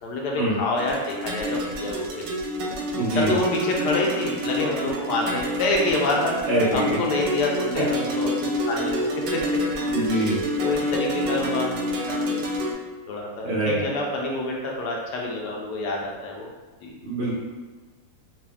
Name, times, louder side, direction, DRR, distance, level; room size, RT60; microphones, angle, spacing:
voice 1, 0.0-2.3 3.1-6.3 6.7-9.0 9.3-9.4 10.0-12.5 13.1-16.5 16.8-16.9, left 2 dB, 70° left, -1 dB, 1.0 m, -27 dB
sound 1, 0.8-12.7, equal, 75° right, 1.3 m, -28 dB
voice 2, 2.9-3.4 6.5-7.0 7.7-7.9 9.9-10.4 13.4-13.9 17.0-17.3, right 1 dB, 50° right, -7 dB, 0.9 m, -24 dB
3.5 x 2.5 x 3.4 m, 1.3 s
omnidirectional pair, 2.1 m